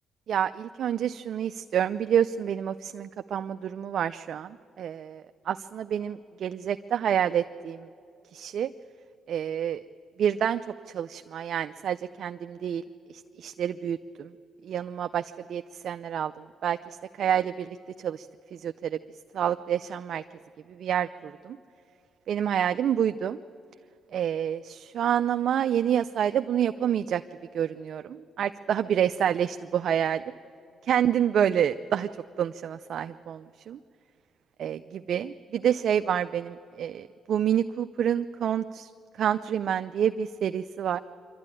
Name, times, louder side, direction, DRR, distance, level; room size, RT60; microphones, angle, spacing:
voice 1, 0.3-7.9 8.3-8.7 9.3-9.8 10.2-10.6 10.9-12.8 13.4-14.3 14.6-15.2 15.5-16.3 16.6-16.8 17.2-17.8 18.0-18.3 18.6-19.0 19.3-20.2 20.8-21.6 22.3-23.4 24.1-27.2 27.5-30.2 30.9-32.1 32.4-33.8 34.6-38.9 39.2-41.0, right 9 dB, 65° right, 9 dB, 0.5 m, -28 dB
25.0 x 12.5 x 9.9 m, 2.5 s
cardioid pair, 90°, 0 cm